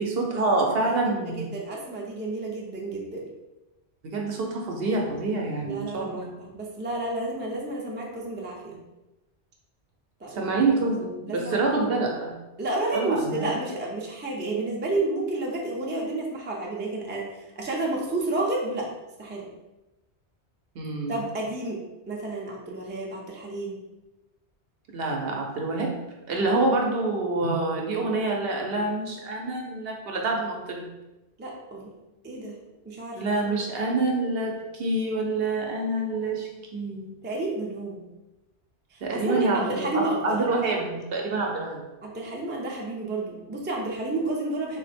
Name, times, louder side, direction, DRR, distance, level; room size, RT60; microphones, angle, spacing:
voice 1, 0.0-1.5 4.0-6.3 10.3-12.4 12.9-13.5 20.8-21.2 24.9-26.0 26.3-30.9 33.2-37.1 39.0-41.8, right 2 dB, 65° right, 1 dB, 0.8 m, -27 dB
voice 2, 0.8-3.2 5.6-8.8 10.2-10.5 11.3-11.6 12.6-18.9 19.2-19.5 21.1-23.8 31.4-31.9 32.2-32.5 32.8-33.5 37.2-38.0 38.9-40.4 42.0-44.8, right 2 dB, 15° right, -2 dB, 0.3 m, -31 dB
3.7 x 2.1 x 4.1 m, 1.0 s
omnidirectional pair, 1.2 m